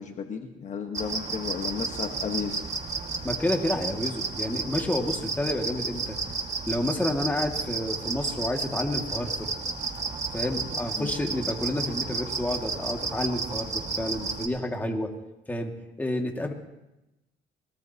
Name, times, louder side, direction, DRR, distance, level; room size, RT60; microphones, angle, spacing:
voice 1, 0.0-2.6 11.0-11.1, left 6 dB, 45° left, 4 dB, 1.4 m, -33 dB
sound 1, 0.9-14.5, right 4 dB, 40° right, 1.9 m, -32 dB
voice 2, 3.2-6.2 6.6-9.5 10.3-15.1 15.5-15.7 16.0-16.5, left 1 dB, 10° left, 2 dB, 2.1 m, -29 dB
22.5 x 18.0 x 2.9 m, 0.96 s
cardioid pair, 110°, 17 cm